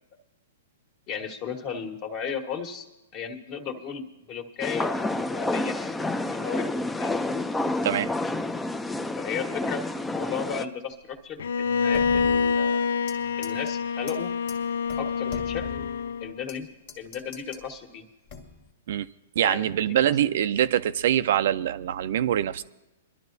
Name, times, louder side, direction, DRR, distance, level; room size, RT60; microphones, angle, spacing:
voice 1, 1.1-2.8 3.1-6.7 7.0-7.4 9.1-12.8 13.4-14.3 15.0-15.9 16.2-16.7 17.0-18.0 19.4-20.1, left 6 dB, 35° left, 1.6 m, -35 dB
sound 1, 4.6-10.6, left 2 dB, 5° left, 0.5 m, -29 dB
Bowed string instrument, 11.4-16.4, left 5 dB, 75° left, 0.4 m, -26 dB
sound 2, 11.9-13.2 13.4-13.7 14.1-14.2 14.5-14.6 14.9-16.6 16.9-17.7 18.3-18.7, left 5 dB, 55° left, 1.6 m, -41 dB
voice 2, 19.4-22.6, right 11 dB, 65° right, 0.4 m, -24 dB
24.0 x 12.0 x 2.7 m
hypercardioid pair, 135°, 0 cm